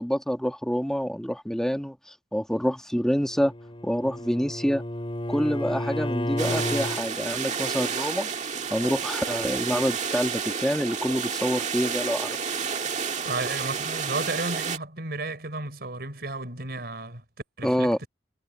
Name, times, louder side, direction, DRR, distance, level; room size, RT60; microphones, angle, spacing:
voice 1, 0.0-3.5 3.8-4.8 5.3-8.3 8.7-12.4 17.6-18.0, equal, 5° left, 1.7 m, -27 dB
Bowed string instrument, 3.2-7.0, left 1 dB, 30° left, 5.7 m, -32 dB
sound 1, 6.4-14.8, right 6 dB, 45° right, 1.8 m, -30 dB
voice 2, 13.2-17.2 17.6-18.1, right 2 dB, 65° right, 5.6 m, -33 dB
head